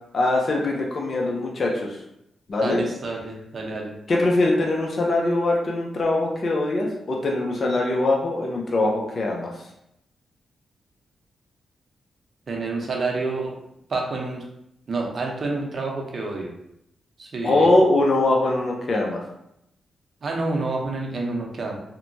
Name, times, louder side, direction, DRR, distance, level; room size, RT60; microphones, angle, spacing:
voice 1, 0.1-2.0 2.5-2.8 4.1-9.5 17.4-19.2, left 2 dB, 55° left, -1 dB, 0.5 m, -22 dB
voice 2, 2.6-3.9 12.5-13.6 13.9-14.4 14.9-16.5 17.2-17.7 20.2-21.8, right 3 dB, 55° right, 0 dB, 0.6 m, -28 dB
2.8 x 2.1 x 2.6 m, 0.80 s
cardioid pair, 60°, 0 cm